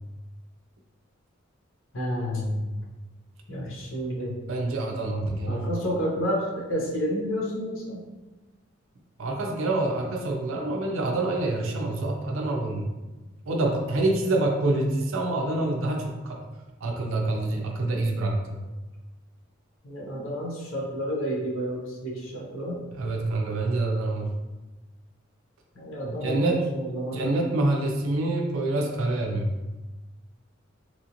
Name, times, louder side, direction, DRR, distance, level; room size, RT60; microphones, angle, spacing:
voice 1, 1.9-2.7 3.5-4.3 5.5-8.0 19.8-22.8 25.8-27.3, equal, 75° left, -4 dB, 0.7 m, -30 dB
voice 2, 4.5-5.7 9.2-16.5 16.8-18.6 22.9-24.3 26.1-26.7 27.1-29.6, right 2 dB, 85° right, 1 dB, 0.5 m, -27 dB
3.0 x 2.8 x 2.5 m, 1.1 s
head